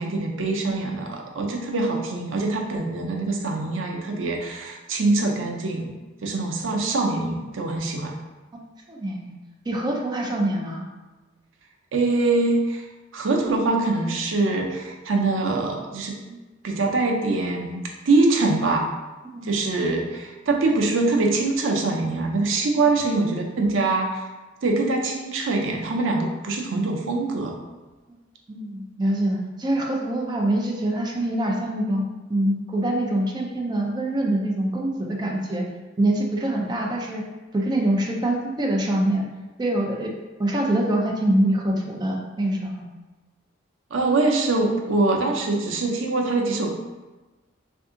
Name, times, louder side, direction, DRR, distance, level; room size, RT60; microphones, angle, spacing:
voice 1, 0.0-5.9 6.2-8.2 11.9-12.8 13.1-16.2 16.6-17.8 18.1-18.9 19.4-24.3 24.6-27.5 43.9-46.7, right 3 dB, 90° right, 2 dB, 0.6 m, -23 dB
voice 2, 8.9-9.3 9.7-10.8 16.3-16.4 19.2-19.5 28.5-32.0 32.3-35.6 36.0-37.2 37.5-39.2 39.6-40.1 40.4-42.8 45.2-45.3, right 1 dB, 20° right, -1 dB, 0.5 m, -24 dB
3.4 x 2.6 x 3.7 m, 1.2 s
head